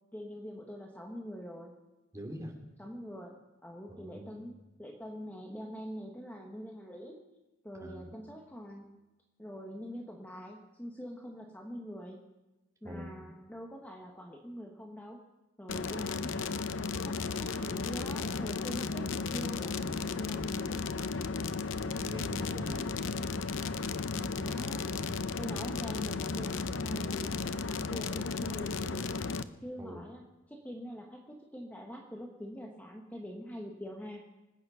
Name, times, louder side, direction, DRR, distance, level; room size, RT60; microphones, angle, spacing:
voice 1, 0.1-1.7 2.8-7.2 7.6-8.9 9.4-12.2 12.8-15.2 15.6-16.6 17.0-21.1 24.1-25.0 25.4-27.4 27.7-29.1 29.6-34.2, equal, 10° left, 0 dB, 1.3 m, -44 dB
voice 2, 2.1-2.5 3.9-4.4 7.8-8.2 12.8-13.3 21.8-22.9 24.8-25.2 29.8-30.1, equal, 15° right, 0 dB, 2.7 m, -44 dB
sound 1, 15.7-29.4, left 4 dB, 70° left, 0.6 m, -34 dB
25.0 x 9.0 x 5.6 m, 1.1 s
head